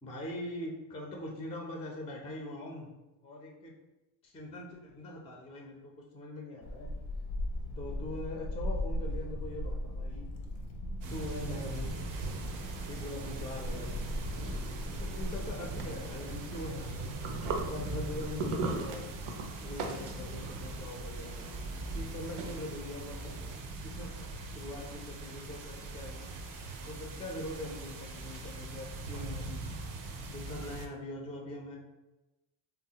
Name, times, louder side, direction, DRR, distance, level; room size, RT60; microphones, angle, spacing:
voice 1, 0.0-2.9 3.2-3.7 4.2-6.9 7.8-10.4 11.1-11.9 12.9-14.0 15.0-17.1 17.6-19.1 19.6-21.3 21.9-23.3 23.8-24.1 24.4-26.3 26.8-29.7 30.3-31.8, left 1 dB, 15° left, 0 dB, 0.4 m, -42 dB
Child speech kid speaking / Wind, 6.6-25.0, left 1 dB, 80° left, 0.6 m, -41 dB
sound 1, 11.0-30.9, right 3 dB, 45° right, 0.5 m, -41 dB
sound 2, 12.1-23.6, right 3 dB, 90° right, 0.6 m, -42 dB
3.1 x 2.0 x 2.8 m, 1.0 s
cardioid pair, 90°, 50 cm